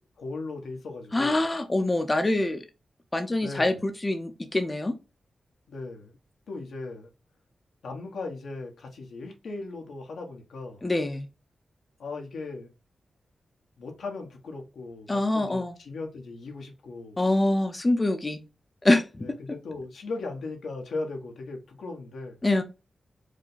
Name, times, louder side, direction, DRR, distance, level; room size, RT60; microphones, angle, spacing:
voice 1, 0.2-1.4 3.4-3.8 5.7-6.2 6.5-7.1 7.8-10.8 12.0-12.7 13.8-17.2 19.2-22.4, left 3 dB, 90° left, 1.2 m, -37 dB
voice 2, 1.1-2.6 3.1-4.9 10.8-11.3 15.1-15.7 17.2-18.4 18.8-19.4 22.4-22.6, left 2 dB, 25° left, 0.6 m, -25 dB
4.9 x 2.2 x 4.0 m
wide cardioid pair, 90°, 0 cm